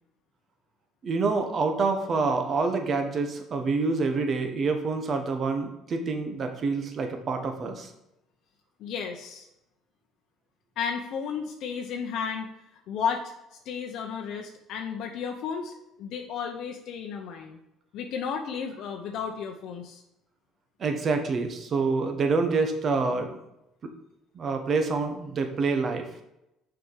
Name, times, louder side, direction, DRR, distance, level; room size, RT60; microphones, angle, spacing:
voice 1, 1.0-7.9 20.8-23.4 24.3-26.1, right 4 dB, 40° right, 6 dB, 1.1 m, -27 dB
voice 2, 8.8-9.5 10.8-12.5 12.9-13.3 13.7-17.6 17.9-20.0, left 6 dB, 65° left, 3 dB, 0.7 m, -33 dB
6.4 x 4.9 x 4.7 m, 0.87 s
cardioid pair, 120°, 0 cm